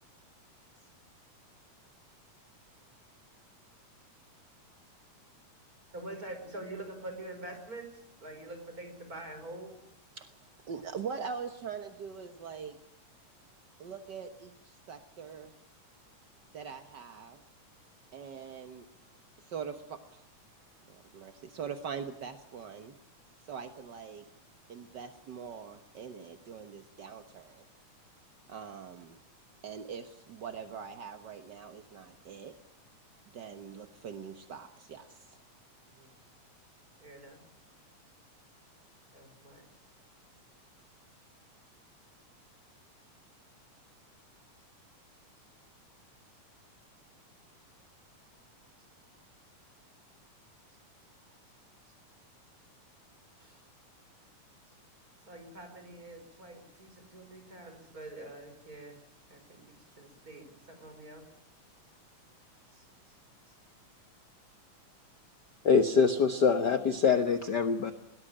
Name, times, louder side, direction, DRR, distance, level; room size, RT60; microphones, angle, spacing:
voice 1, 5.9-9.8 35.9-36.1 37.0-37.4 39.1-39.7 53.4-53.6 55.3-59.0 59.3-61.3 62.7-63.0 63.5-63.6, right 2 dB, 25° right, 6 dB, 5.4 m, -46 dB
voice 2, 10.7-12.8 13.8-15.5 16.5-17.4 18.1-18.8 19.4-20.2 20.9-22.9 23.5-24.2 24.7-27.6 28.5-29.2 29.6-32.5 33.3-35.4, right 6 dB, 65° right, 8 dB, 1.1 m, -42 dB
voice 3, 65.6-67.9, left 5 dB, 65° left, 9 dB, 1.0 m, -24 dB
21.5 x 19.0 x 8.8 m, 0.75 s
omnidirectional pair, 3.7 m